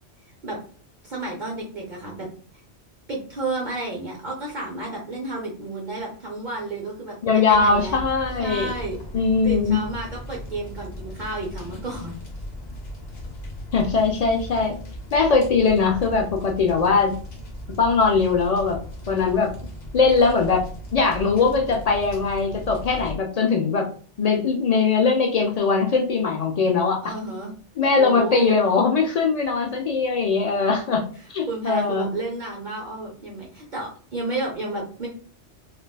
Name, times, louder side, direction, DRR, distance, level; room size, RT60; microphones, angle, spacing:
voice 1, 1.0-2.3 3.1-8.0 8.4-9.0 9.4-12.2 27.0-27.5 28.0-28.6 31.5-35.1, right 2 dB, 50° right, -2 dB, 0.7 m, -31 dB
voice 2, 7.2-8.7 9.1-9.8 13.7-14.8 15.1-17.2 17.8-18.8 19.1-19.5 19.9-20.7 20.9-23.9 24.2-27.1 27.8-32.1, left 4 dB, 75° left, 2 dB, 0.3 m, -21 dB
sound 1, 7.5-23.2, equal, 40° left, 0.9 m, -37 dB
3.3 x 2.3 x 2.2 m, 0.43 s
omnidirectional pair, 1.2 m